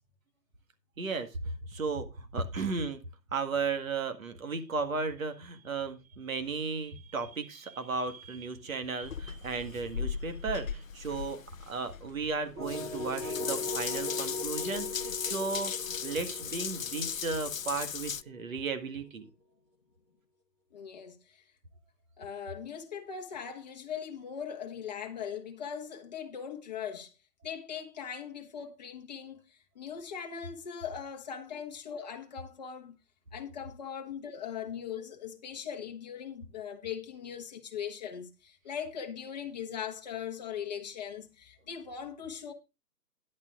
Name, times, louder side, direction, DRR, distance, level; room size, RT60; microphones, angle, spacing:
voice 1, 1.0-1.3 1.7-3.0 3.3-11.4 11.7-15.7 16.0-19.3, right 4 dB, 55° right, 2.0 m, -35 dB
Water tap faucet / Bathtub (filling or washing) / Drip, 9.0-18.2, left 7 dB, 55° left, 0.6 m, -37 dB
sound 1, 12.6-18.4, left 2 dB, 10° right, 1.5 m, -39 dB
voice 2, 20.7-21.4 22.2-27.1 27.4-33.0 33.3-42.5, left 8 dB, 25° left, 1.2 m, -40 dB
13.5 x 10.5 x 2.5 m
hypercardioid pair, 160°, 49 cm